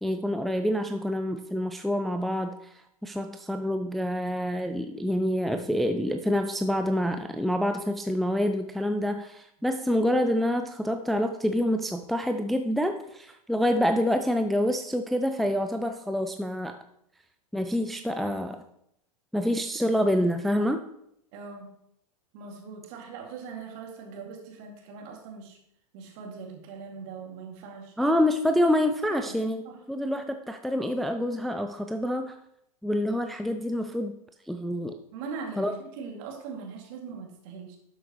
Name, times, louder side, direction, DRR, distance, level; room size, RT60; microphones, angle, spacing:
voice 1, 0.0-16.8 17.5-18.7 19.3-20.8 28.0-32.3 32.8-34.1 34.5-35.0 35.6-35.7, equal, ahead, 6 dB, 0.4 m, -27 dB
voice 2, 21.3-21.7 22.3-25.6 25.9-28.0 29.1-29.4 29.6-29.8 35.1-37.8, right 5 dB, 50° right, 1 dB, 2.3 m, -41 dB
12.0 x 6.3 x 3.0 m, 0.75 s
hypercardioid pair, 100°, 19 cm